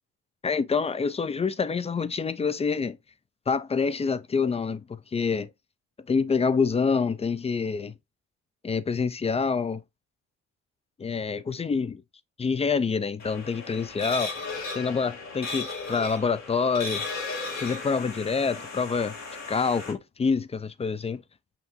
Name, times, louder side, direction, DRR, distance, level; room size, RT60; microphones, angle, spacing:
voice 1, 0.4-3.0 3.5-5.5 6.1-7.9 8.6-9.8 11.0-12.0 12.4-14.3 14.7-17.0 17.6-19.2 19.5-21.2, left 5 dB, 20° left, 0.3 m, -26 dB
sound 1, 13.2-19.9, left 3 dB, 60° left, 2.7 m, -36 dB
5.9 x 2.6 x 2.7 m
cardioid pair, 90°, 30 cm